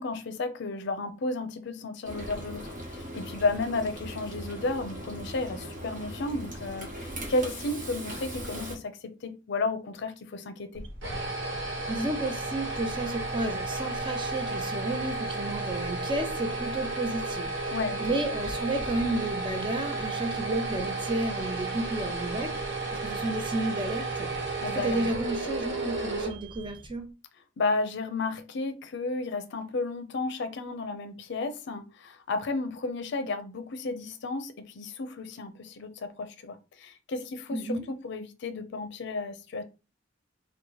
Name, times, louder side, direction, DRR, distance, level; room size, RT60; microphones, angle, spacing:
voice 1, 0.0-10.9 17.7-18.1 24.6-25.1 27.6-39.6, left 3 dB, 65° left, 0.5 m, -33 dB
Frying (food), 2.0-8.8, equal, 45° right, 1.2 m, -39 dB
sound 1, 10.7-27.0, right 2 dB, 65° right, 1.1 m, -33 dB
voice 2, 11.9-17.7 18.0-22.5 23.0-27.1 37.5-37.8, right 2 dB, 25° right, 0.6 m, -32 dB
2.8 x 2.2 x 3.8 m
head